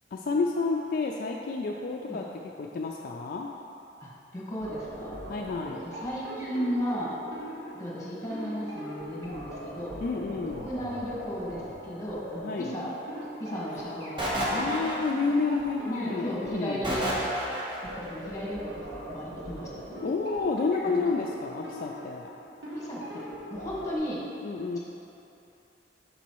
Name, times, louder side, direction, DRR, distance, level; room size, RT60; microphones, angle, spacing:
voice 1, 0.1-3.5 5.3-5.8 10.0-10.7 12.4-12.7 13.7-14.2 14.5-16.9 20.0-22.3 24.4-24.8, left 4 dB, 55° left, 0 dB, 0.3 m, -30 dB
voice 2, 4.0-5.2 5.6-7.2 7.8-10.0 10.3-12.9 13.4-14.7 15.9-17.1 18.0-20.0 20.8-21.0 22.7-23.0 23.5-24.3, equal, 20° left, -6 dB, 1.5 m, -35 dB
sound 1, 4.6-24.0, equal, 80° right, 1.3 m, -41 dB
sound 2, 14.2-15.4 16.8-17.9, equal, 30° right, 1.1 m, -30 dB
6.8 x 4.1 x 4.6 m, 2.9 s
head